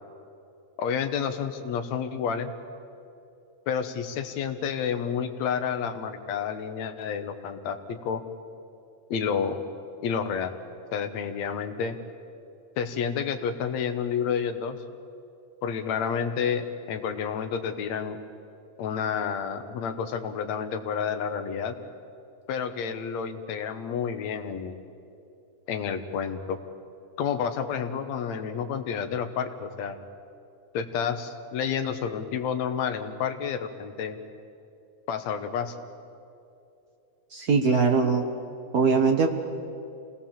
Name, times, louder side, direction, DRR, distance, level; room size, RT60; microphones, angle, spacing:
voice 1, 0.8-2.5 3.7-8.2 9.1-9.6 10.0-10.5 10.9-12.0 12.8-14.8 15.6-18.2 18.8-21.8 22.5-24.8 25.7-26.6 27.2-30.0 30.7-34.2 35.1-35.8, left 7 dB, 70° left, 7 dB, 2.4 m, -30 dB
voice 2, 37.3-38.2 38.7-39.3, right 5 dB, 75° right, 4 dB, 0.8 m, -21 dB
27.5 x 19.0 x 7.3 m, 2.6 s
omnidirectional pair, 3.3 m